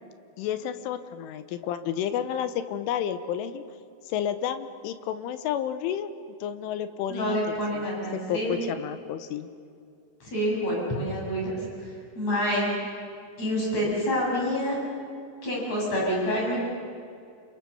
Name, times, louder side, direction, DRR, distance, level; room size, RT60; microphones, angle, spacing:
voice 1, 0.4-3.6 4.1-6.1 6.4-7.9 8.1-9.5, left 9 dB, 80° left, 11 dB, 3.4 m, -31 dB
voice 2, 7.1-8.6 10.2-11.6 12.2-12.7 13.4-14.7 15.4-16.7, equal, 30° left, -3 dB, 8.7 m, -27 dB
28.5 x 27.0 x 7.1 m, 2.4 s
omnidirectional pair, 6.0 m